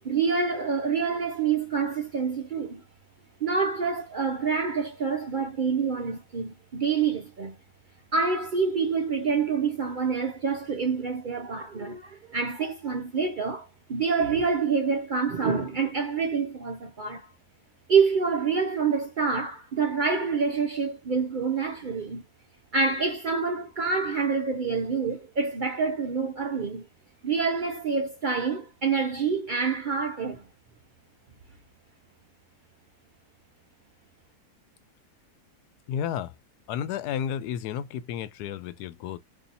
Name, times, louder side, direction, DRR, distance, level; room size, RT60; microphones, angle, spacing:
voice 1, 0.0-2.8 3.4-7.6 8.1-17.3 17.9-22.2 22.7-26.9 27.2-30.4, right 5 dB, 80° right, 0.4 m, -27 dB
voice 2, 35.9-36.4 36.7-39.2, left 9 dB, 85° left, 1.1 m, -32 dB
2.8 x 2.7 x 3.9 m
omnidirectional pair, 1.6 m